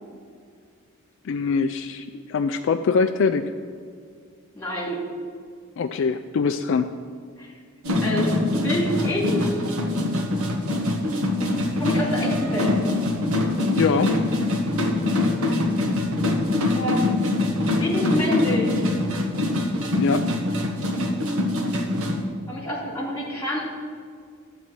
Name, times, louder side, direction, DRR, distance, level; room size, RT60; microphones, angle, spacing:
voice 1, 1.2-3.5 5.8-6.9 13.8-14.2 20.0-20.3, left 5 dB, 55° left, 8 dB, 0.3 m, -23 dB
voice 2, 4.5-5.0 7.4-7.5 8.0-9.5 11.7-12.7 16.7-17.2 17.8-18.8 22.5-23.6, equal, 10° left, -3 dB, 2.4 m, -27 dB
sound 1, 7.8-22.2, left 2 dB, 75° right, 1.2 m, -24 dB
12.5 x 4.1 x 7.6 m, 2.1 s
head